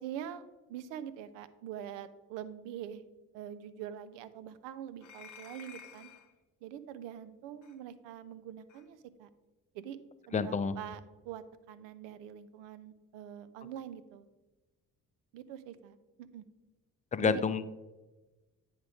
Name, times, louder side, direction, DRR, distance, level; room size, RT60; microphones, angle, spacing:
voice 1, 0.0-3.1 3.3-6.1 6.6-9.3 9.7-10.0 10.3-14.3 15.3-16.4 17.2-17.4, right 10 dB, 65° right, 14 dB, 0.7 m, -44 dB
sound 1, 5.0-6.3 7.6-7.8 8.7-8.9, left 7 dB, 40° left, 1.0 m, -52 dB
voice 2, 10.3-10.8 17.1-17.7, left 5 dB, 15° left, 13 dB, 0.4 m, -29 dB
9.4 x 3.7 x 4.8 m, 1.1 s
hypercardioid pair, 45°, 47 cm